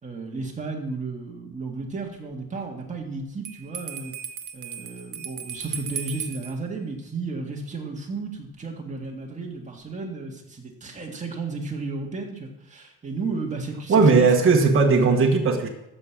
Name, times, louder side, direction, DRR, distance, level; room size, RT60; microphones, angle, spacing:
voice 1, 0.0-4.1 4.5-14.7, right 3 dB, 25° right, 0 dB, 1.7 m, -33 dB
Bell, 3.4-6.5, right 7 dB, 65° right, 1.0 m, -36 dB
voice 2, 13.9-15.7, right 4 dB, 40° right, 1 dB, 1.3 m, -17 dB
13.5 x 5.0 x 7.0 m, 0.88 s
wide cardioid pair, 175°, 32 cm